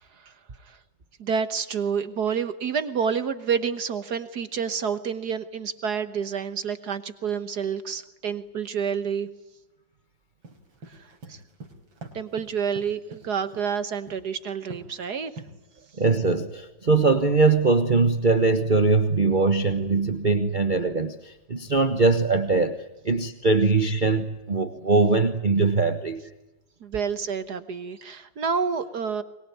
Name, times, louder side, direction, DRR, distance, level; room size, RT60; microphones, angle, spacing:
voice 1, 1.2-9.3 10.9-11.4 12.1-15.3 26.8-29.2, right 6 dB, 60° right, 12 dB, 1.6 m, -29 dB
sound 1, 10.4-13.7 14.1-14.4 14.7-15.0 15.4-15.9, right 2 dB, 85° right, 4.4 m, -43 dB
voice 2, 16.0-22.8 23.0-26.2, right 3 dB, 30° right, 8 dB, 1.2 m, -21 dB
23.0 x 22.5 x 9.4 m, 0.98 s
omnidirectional pair, 2.1 m